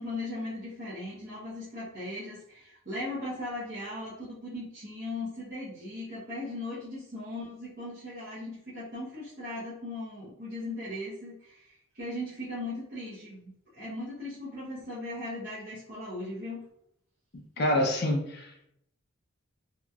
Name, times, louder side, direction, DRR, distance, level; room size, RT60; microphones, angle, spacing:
voice 1, 0.0-16.6, left 1 dB, 50° right, -11 dB, 1.0 m, -38 dB
voice 2, 17.6-18.7, left 1 dB, 50° left, 2 dB, 0.6 m, -27 dB
2.9 x 2.8 x 2.3 m, 0.75 s
head